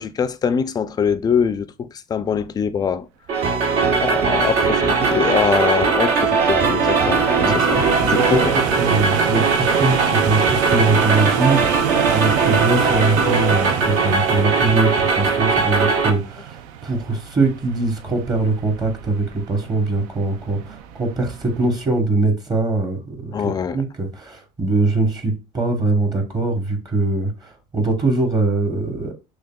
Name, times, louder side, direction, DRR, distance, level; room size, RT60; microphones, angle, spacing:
voice 1, 0.0-3.1 4.0-4.8 5.1-8.6 23.3-23.8, left 7 dB, 25° left, 0.3 m, -23 dB
sound 1, 3.3-5.9 6.2-9.0 9.3-9.5 9.8-9.9 10.3-10.8 11.2-11.3 11.6-11.7 12.1-12.7 13.2-13.3 13.8-13.9 14.4-15.1, right 5 dB, 45° right, 0.7 m, -27 dB
sound 2, 3.3-16.1, right 4 dB, 70° right, 0.9 m, -20 dB
sound 3, 3.5-21.8, right 9 dB, 85° right, 0.4 m, -29 dB
voice 2, 7.4-8.1 8.7-29.1, right 3 dB, 30° right, 1.0 m, -22 dB
6.2 x 2.3 x 2.2 m
cardioid pair, 115°, 14 cm